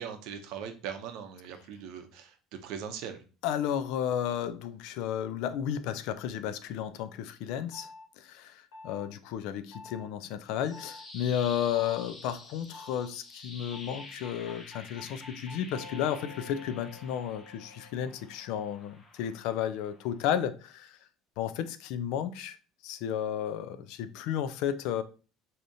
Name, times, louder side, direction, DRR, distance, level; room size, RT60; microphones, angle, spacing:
voice 1, 0.0-3.2, right 7 dB, 60° right, 0.6 m, -40 dB
voice 2, 3.4-7.9 8.2-21.0 21.4-22.6 22.8-25.0, left 9 dB, 60° left, 0.4 m, -33 dB
sound 1, 7.7-8.1 8.7-9.1 9.7-10.1 10.7-11.0 11.7-12.1 12.7-13.1 13.7-18.8, left 2 dB, 85° left, 1.3 m, -49 dB
sound 2, 10.4-20.5, left 2 dB, 15° left, 0.6 m, -49 dB
4.8 x 2.7 x 2.6 m
cardioid pair, 175°, 0 cm